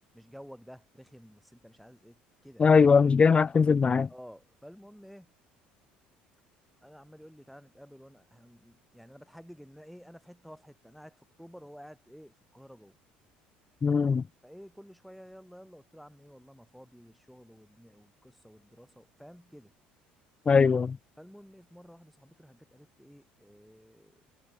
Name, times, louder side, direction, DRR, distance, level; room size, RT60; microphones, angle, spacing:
voice 1, 0.1-2.9 4.1-5.3 6.8-13.0 14.4-19.7 21.2-24.2, equal, ahead, 4.9 m, -52 dB
voice 2, 2.6-4.1 13.8-14.2 20.5-21.0, left 5 dB, 25° left, 0.3 m, -21 dB
supercardioid pair, 75°, 4 cm